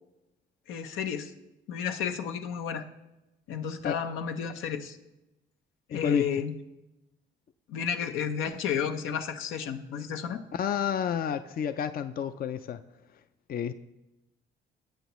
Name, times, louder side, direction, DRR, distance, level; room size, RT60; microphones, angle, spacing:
voice 1, 0.7-1.3 1.7-2.9 3.5-5.0 5.9-6.5 7.7-10.4, left 7 dB, 90° left, 7 dB, 0.8 m, -32 dB
voice 2, 5.9-6.3 10.5-12.8 13.5-13.7, left 8 dB, 50° left, 11 dB, 0.5 m, -30 dB
18.0 x 7.9 x 3.1 m, 0.97 s
cardioid pair, 90°, 20 cm